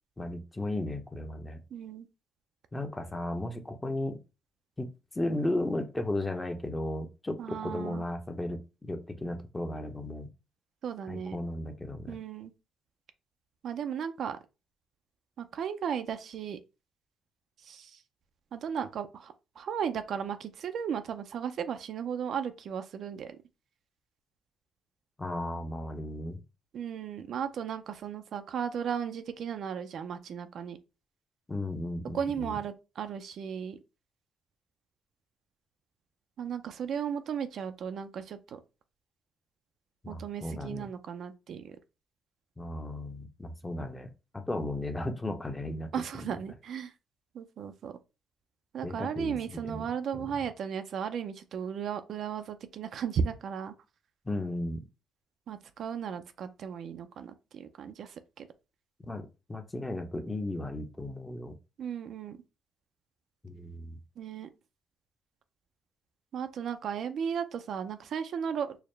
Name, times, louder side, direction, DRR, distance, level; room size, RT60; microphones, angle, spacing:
voice 1, 0.2-1.6 2.7-4.2 4.8-4.9 5.1-10.3 11.1-12.2 25.2-26.4 31.5-32.6 40.0-40.9 42.6-45.9 48.8-50.3 54.3-54.8 59.1-59.2 59.5-61.5 63.4-64.0, left 1 dB, 15° left, 0.7 m, -35 dB
voice 2, 1.7-2.1 7.4-8.1 10.8-11.4 12.1-12.5 13.6-14.4 15.4-16.6 17.6-18.0 18.5-23.4 26.7-30.8 32.1-33.8 36.4-38.6 40.1-41.8 45.9-46.9 47.3-48.0 48.7-53.7 55.5-58.5 61.8-62.4 64.2-64.5 66.3-68.8, right 7 dB, 65° right, 0.4 m, -35 dB
4.7 x 2.1 x 3.2 m
cardioid pair, 90°, 0 cm